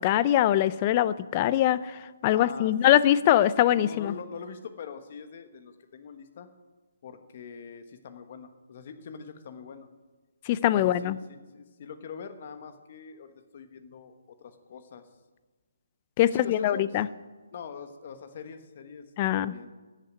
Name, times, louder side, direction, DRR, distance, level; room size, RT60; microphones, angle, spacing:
voice 1, 0.0-4.1 10.5-11.2 16.2-17.1 19.2-19.5, left 12 dB, 25° left, 16 dB, 0.4 m, -23 dB
voice 2, 2.3-2.7 3.1-3.2 3.5-6.5 7.0-9.9 10.7-15.1 16.3-17.0 17.5-19.0 19.3-19.7, left 6 dB, 40° left, 9 dB, 1.3 m, -43 dB
14.0 x 6.6 x 9.5 m, 1.3 s
hypercardioid pair, 170°, 0 cm